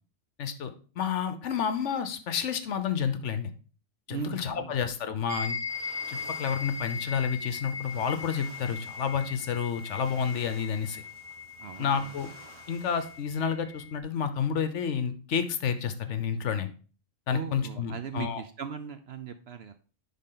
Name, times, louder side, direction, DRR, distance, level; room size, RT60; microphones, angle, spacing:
voice 1, 0.4-3.5 4.1-5.6 6.1-11.0 11.8-12.3 12.7-16.7 17.3-18.4, left 7 dB, 65° left, 10 dB, 1.0 m, -30 dB
voice 2, 4.1-4.8 11.6-12.1 17.3-19.7, right 7 dB, 65° right, 9 dB, 0.7 m, -38 dB
sound 1, 5.3-14.0, left 5 dB, 35° right, 1.2 m, -39 dB
sound 2, 5.7-13.2, right 1 dB, 20° right, 1.7 m, -53 dB
10.5 x 3.7 x 3.8 m, 0.38 s
omnidirectional pair, 1.4 m